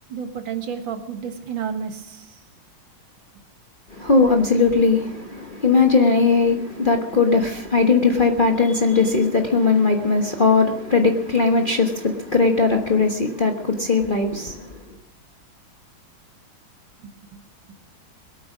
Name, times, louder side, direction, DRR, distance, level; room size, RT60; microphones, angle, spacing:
voice 1, 0.1-2.4 17.0-17.4 17.7-17.8, right 7 dB, 65° right, 2.2 m, -31 dB
voice 2, 3.9-14.8, left 4 dB, 30° left, 1.1 m, -19 dB
21.5 x 9.1 x 6.1 m
omnidirectional pair, 2.3 m